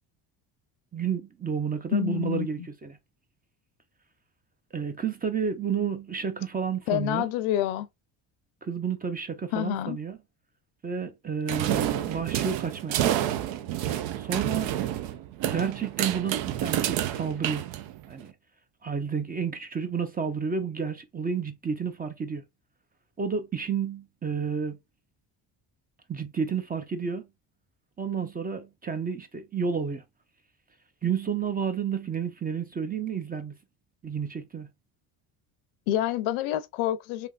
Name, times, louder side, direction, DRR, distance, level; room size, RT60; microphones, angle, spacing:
voice 1, 0.9-3.0 4.7-7.3 8.6-10.2 10.8-13.0 14.2-14.7 15.5-17.6 18.1-18.3 18.8-22.4 23.2-24.8 26.1-27.3 28.0-30.0 31.0-33.5 34.0-34.7, right 6 dB, 20° right, 0.5 m, -31 dB
voice 2, 1.9-2.7 6.9-7.9 9.5-10.0 35.9-37.3, left 12 dB, 90° left, 0.6 m, -27 dB
sound 1, 11.5-18.2, right 12 dB, 70° right, 0.6 m, -29 dB
3.4 x 2.8 x 2.4 m
cardioid pair, 105°, 47 cm